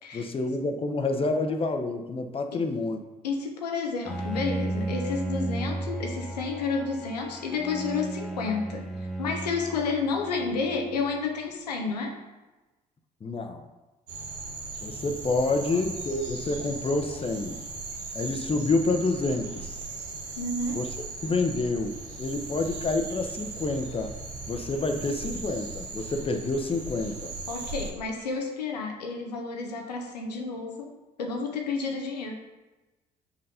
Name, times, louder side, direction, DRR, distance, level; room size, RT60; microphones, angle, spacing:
voice 1, 0.1-3.0 13.2-13.6 14.8-17.6 18.1-19.8 20.7-20.8 21.2-24.1 24.5-27.3, left 3 dB, 25° left, 6 dB, 0.8 m, -28 dB
voice 2, 3.2-12.2 20.4-20.9 27.5-32.3, left 4 dB, 90° left, 2 dB, 0.6 m, -31 dB
Bowed string instrument, 4.0-11.2, right 2 dB, ahead, 1.0 m, -34 dB
sound 1, 14.1-27.9, right 3 dB, 85° right, 1.0 m, -38 dB
sound 2, 21.9-28.4, right 2 dB, 45° right, 1.2 m, -50 dB
5.4 x 4.1 x 5.5 m, 1.1 s
hypercardioid pair, 50°, 20 cm